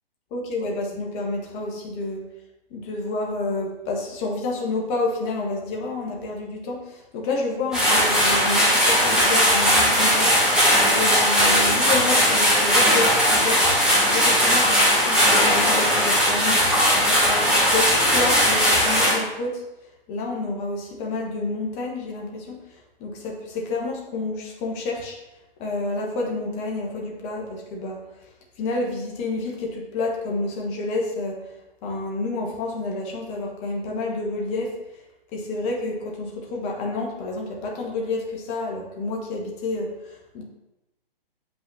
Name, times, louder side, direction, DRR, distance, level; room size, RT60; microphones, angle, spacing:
voice 1, 0.3-2.3 2.7-13.6 14.0-16.6 16.9-19.6 20.1-25.2 25.6-28.0 28.6-31.5 31.8-34.8 35.3-40.4, left 2 dB, 25° left, -1 dB, 1.1 m, -29 dB
sound 1, 7.7-19.1, equal, ahead, 2.3 m, -18 dB
7.4 x 5.7 x 2.7 m, 0.98 s
figure-of-eight pair, 130°, 29 cm